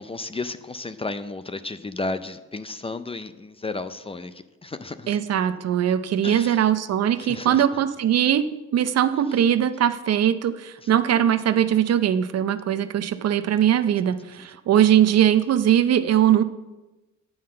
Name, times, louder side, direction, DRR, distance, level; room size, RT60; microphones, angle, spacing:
voice 1, 0.0-5.2 6.2-6.6 7.2-7.7 9.3-9.4 10.8-10.9, left 3 dB, 20° left, 12 dB, 0.5 m, -33 dB
voice 2, 5.1-8.4 8.7-16.4, right 10 dB, 55° right, 12 dB, 0.6 m, -20 dB
8.6 x 5.6 x 7.6 m, 1.1 s
cardioid pair, 90°, 30 cm